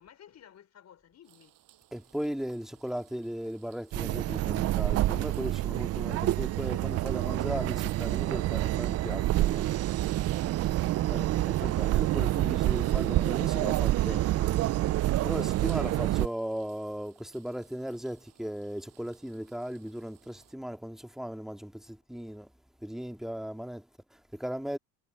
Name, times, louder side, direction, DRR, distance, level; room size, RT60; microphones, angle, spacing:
voice 1, 0.0-1.6 10.8-11.3 14.1-15.1, left 9 dB, 45° left, 4.9 m, -55 dB
sound 1, 1.2-20.5, right 14 dB, 60° right, 6.5 m, -63 dB
voice 2, 1.9-9.7 11.1-14.2 15.2-22.5 22.8-24.8, equal, ahead, 2.2 m, -37 dB
sound 2, 3.9-16.3, right 15 dB, 40° right, 0.5 m, -27 dB
supercardioid pair, 95°, 37 cm